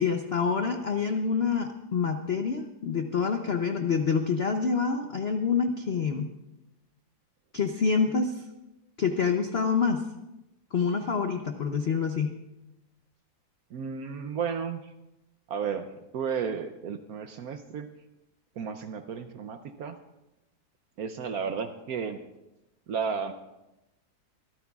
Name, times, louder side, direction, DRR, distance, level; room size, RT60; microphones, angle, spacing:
voice 1, 0.0-6.3 7.5-8.4 9.0-10.0 10.7-12.3, left 5 dB, 65° left, 6 dB, 0.6 m, -27 dB
voice 2, 13.7-14.9 15.5-17.9 18.6-20.0 21.0-22.2 22.9-23.3, right 6 dB, 65° right, 8 dB, 0.9 m, -33 dB
24.5 x 13.5 x 2.4 m, 0.95 s
omnidirectional pair, 2.1 m